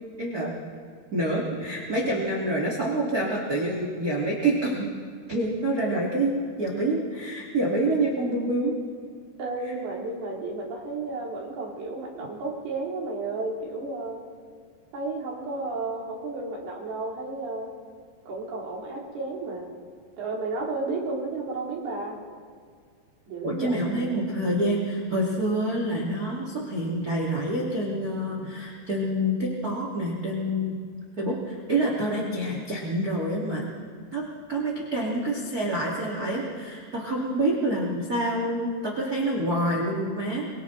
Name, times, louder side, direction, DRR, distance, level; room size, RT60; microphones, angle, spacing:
voice 1, 0.2-0.5 1.1-4.9 5.3-8.7 23.4-30.8 31.2-33.6 34.1-34.2 34.5-40.5, right 1 dB, 25° right, -3 dB, 2.4 m, -27 dB
voice 2, 9.4-14.2 14.9-17.7 18.3-19.7 20.2-22.2 23.3-24.3, right 3 dB, 70° right, -3 dB, 5.1 m, -32 dB
28.0 x 24.0 x 4.0 m, 2.1 s
omnidirectional pair, 4.6 m